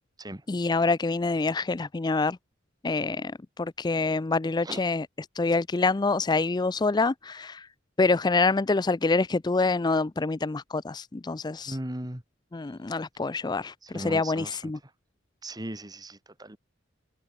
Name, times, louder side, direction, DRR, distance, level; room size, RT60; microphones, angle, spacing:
voice 1, 0.5-2.4 2.8-3.3 3.6-5.1 5.4-7.7 8.0-11.8 12.5-14.8, left 3 dB, 20° left, 0.4 m, -26 dB
voice 2, 11.7-12.2 13.8-14.7 15.4-16.6, right 1 dB, 20° right, 2.1 m, -37 dB
head